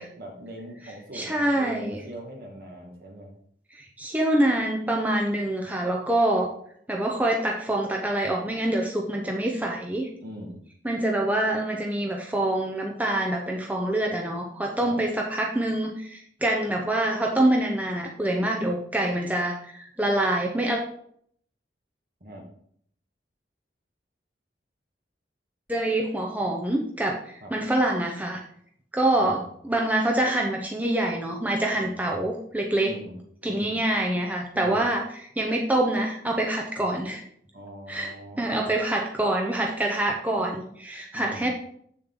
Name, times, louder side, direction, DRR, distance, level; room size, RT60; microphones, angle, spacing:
voice 1, 0.2-3.3 10.2-10.6 14.8-15.0 22.2-22.4 27.4-27.5 29.2-29.4 31.7-32.0 32.8-33.2 33.4-33.8 34.5-34.9 36.8-36.9 37.5-38.7 41.1-41.5, equal, 55° right, 0 dB, 1.9 m, -41 dB
voice 2, 1.1-2.0 3.7-6.5 6.9-10.1 10.8-20.8 25.7-28.4 28.9-32.9 33.4-35.0 35.4-37.2 37.9-38.1 38.4-41.5, right 1 dB, 10° right, 0 dB, 0.8 m, -25 dB
7.7 x 6.7 x 3.8 m, 0.64 s
head